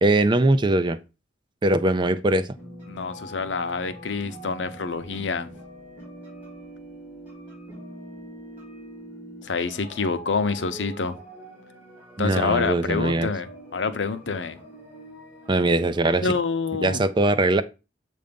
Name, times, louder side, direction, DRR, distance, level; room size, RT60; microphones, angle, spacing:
voice 1, 0.0-1.0 1.6-2.5 12.2-13.3 15.5-16.3 16.8-17.6, right 2 dB, 25° right, 0.4 m, -21 dB
sound 1, 2.6-16.3, right 1 dB, 10° right, 4.0 m, -43 dB
voice 2, 2.9-5.5 9.4-11.2 12.2-14.6 16.0-17.0, left 4 dB, 90° left, 0.7 m, -27 dB
7.7 x 2.6 x 5.1 m
head